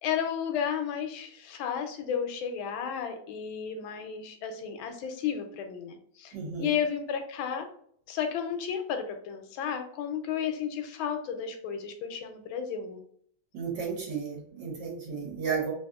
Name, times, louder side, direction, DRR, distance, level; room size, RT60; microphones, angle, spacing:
voice 1, 0.0-7.7 8.1-13.0, left 8 dB, 85° left, 6 dB, 1.4 m, -33 dB
voice 2, 6.3-6.8 13.5-15.7, right 6 dB, 65° right, -2 dB, 1.6 m, -33 dB
3.4 x 2.7 x 2.3 m, 0.62 s
omnidirectional pair, 2.2 m